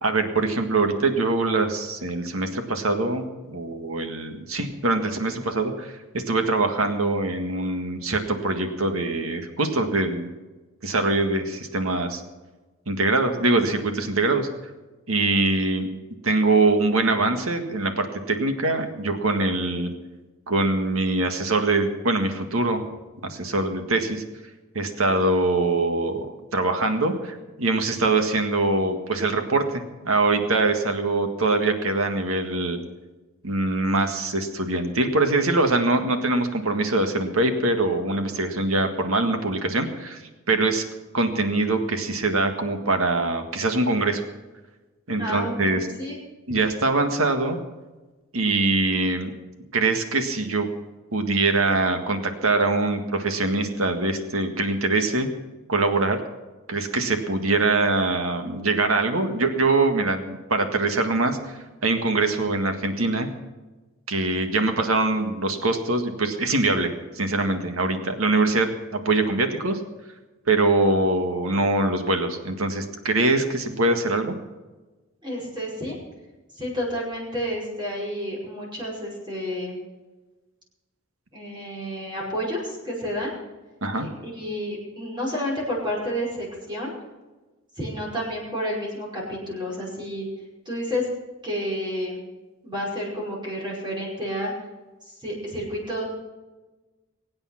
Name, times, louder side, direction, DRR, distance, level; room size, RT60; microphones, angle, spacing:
voice 1, 0.0-10.3 10.8-12.2 12.9-14.5 15.1-15.9 16.2-19.9 20.5-22.8 23.2-24.2 24.8-32.8 33.4-40.2 40.5-40.8 41.1-44.2 45.1-45.9 46.5-47.6 48.3-49.3 49.7-50.7 51.1-55.3 55.7-56.2 56.7-63.3 64.1-69.8 70.5-74.4 83.8-84.1, right 2 dB, 90° right, 6 dB, 1.8 m, -23 dB
voice 2, 45.2-46.2 75.2-76.0 76.6-79.8 81.3-83.3 83.9-86.9 87.8-90.3 90.7-91.1 91.4-92.2 92.6-94.5 95.2-96.0, equal, 20° right, -4 dB, 5.3 m, -30 dB
23.0 x 8.8 x 5.9 m, 1.2 s
head